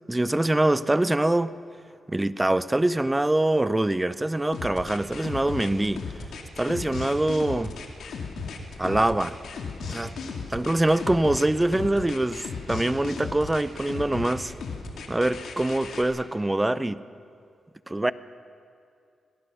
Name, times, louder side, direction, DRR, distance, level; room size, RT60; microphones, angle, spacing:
voice 1, 0.1-1.5 2.1-6.0 6.6-7.8 8.8-9.3 9.9-10.1 10.5-14.5 15.1-17.0 17.9-18.1, right 1 dB, 15° right, 16 dB, 0.7 m, -24 dB
sound 1, 4.5-16.1, left 5 dB, 80° left, 2.4 m, -36 dB
23.5 x 18.5 x 6.4 m, 2.4 s
cardioid pair, 80°, 0 cm